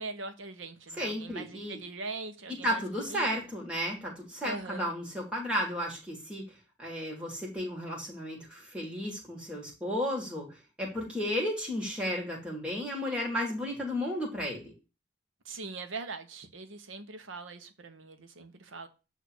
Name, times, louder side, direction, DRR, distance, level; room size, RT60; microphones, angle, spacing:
voice 1, 0.0-2.8 3.1-3.3 4.4-4.9 15.4-18.9, right 3 dB, 90° right, 1.0 m, -41 dB
voice 2, 1.0-1.8 2.6-6.4 6.8-14.7, equal, 5° right, 1.6 m, -33 dB
8.1 x 2.7 x 6.1 m
head